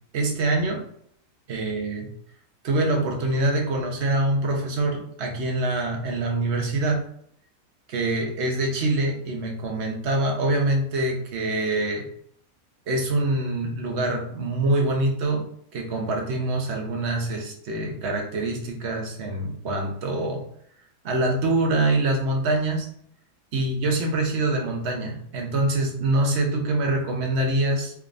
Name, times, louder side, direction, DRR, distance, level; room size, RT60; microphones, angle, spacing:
voice 1, 0.1-0.8 1.5-2.1 2.6-7.0 7.9-12.0 12.9-15.4 15.7-20.4 21.0-22.9 23.5-27.9, right 2 dB, 50° right, 1 dB, 0.9 m, -25 dB
3.5 x 3.4 x 2.5 m, 0.65 s
omnidirectional pair, 1.8 m